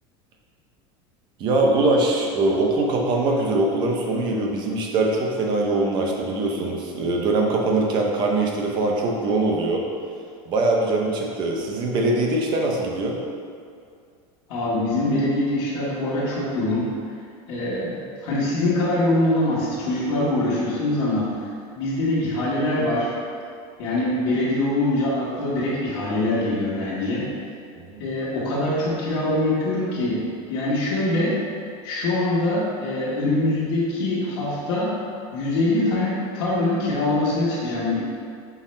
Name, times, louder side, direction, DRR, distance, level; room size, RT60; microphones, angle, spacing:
voice 1, 1.4-9.8 10.5-13.2 27.9-28.0, right 2 dB, 35° right, 0 dB, 0.5 m, -22 dB
voice 2, 14.5-16.9 17.5-21.5 21.7-23.1 23.8-27.3 28.0-31.4 31.8-34.9 35.3-38.0, left 1 dB, 70° left, -8 dB, 1.1 m, -23 dB
5.7 x 2.0 x 4.2 m, 2.3 s
cardioid pair, 170°, 14 cm